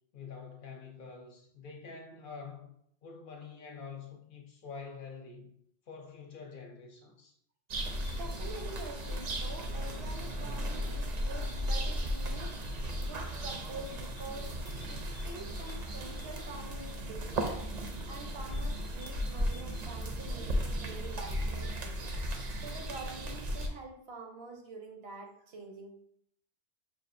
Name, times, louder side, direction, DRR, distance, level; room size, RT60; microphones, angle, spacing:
voice 1, 0.1-2.7 3.0-5.5 5.9-7.4, left 5 dB, 60° left, 0.7 m, -46 dB
sound 1, 7.7-23.7, equal, 50° right, 0.6 m, -35 dB
voice 2, 8.2-12.6 13.0-26.0, right 2 dB, 75° right, 1.0 m, -47 dB
6.0 x 2.4 x 2.5 m
omnidirectional pair, 1.0 m